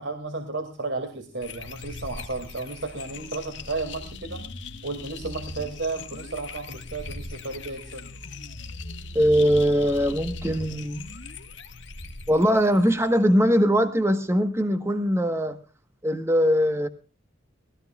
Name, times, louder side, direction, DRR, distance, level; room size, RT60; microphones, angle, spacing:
voice 1, 0.0-8.1, right 3 dB, 70° right, 2.5 m, -33 dB
sound 1, 1.4-13.4, left 3 dB, 75° left, 1.8 m, -39 dB
voice 2, 9.1-11.0 12.3-15.6 16.0-16.9, equal, 15° right, 1.3 m, -21 dB
21.5 x 16.5 x 2.4 m
head